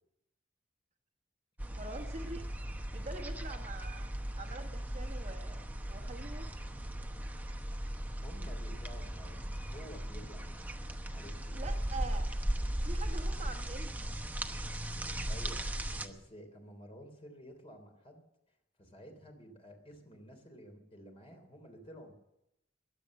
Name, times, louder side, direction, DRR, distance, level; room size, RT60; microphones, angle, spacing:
sound 1, 1.6-16.1, right 1 dB, 10° right, 1.0 m, -37 dB
voice 1, 1.7-2.5 2.9-4.1 4.4-6.5 11.5-12.3 12.8-14.1, right 3 dB, 40° right, 5 dB, 1.3 m, -45 dB
voice 2, 8.1-10.8 11.1-11.7 15.3-15.6 16.0-18.2 18.8-22.1, equal, 35° left, 4 dB, 3.3 m, -52 dB
22.0 x 8.3 x 7.6 m, 0.85 s
head